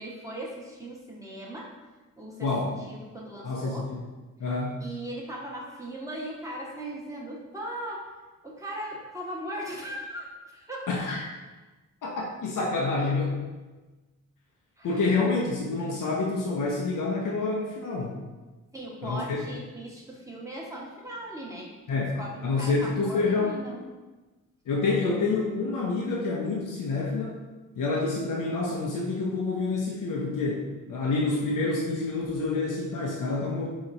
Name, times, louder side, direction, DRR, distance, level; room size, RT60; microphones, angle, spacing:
voice 1, 0.0-1.7 2.2-3.9 4.8-8.1 8.4-10.9 14.8-15.1 18.7-23.9, right 1 dB, 10° right, -3 dB, 1.0 m, -38 dB
voice 2, 2.4-2.7 3.4-3.8 4.4-4.8 10.9-11.2 12.0-13.4 14.8-18.2 19.0-19.4 21.9-23.5 24.7-27.4 27.8-33.7, left 3 dB, 90° left, -3 dB, 0.7 m, -28 dB
4.2 x 2.9 x 3.9 m, 1.2 s
wide cardioid pair, 90°, 31 cm